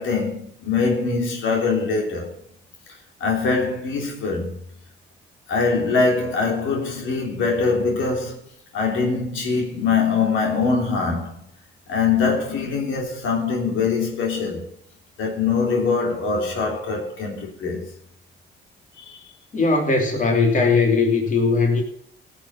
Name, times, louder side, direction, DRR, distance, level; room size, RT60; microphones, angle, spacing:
voice 1, 0.0-2.4 3.2-4.5 5.5-8.4 8.7-11.4 11.9-14.7 15.2-17.9 19.0-19.2, left 4 dB, 80° left, 3.3 m, -23 dB
voice 2, 19.5-21.8, left 4 dB, 40° left, 3.1 m, -19 dB
16.5 x 7.1 x 5.8 m
cardioid pair, 90°, 20 cm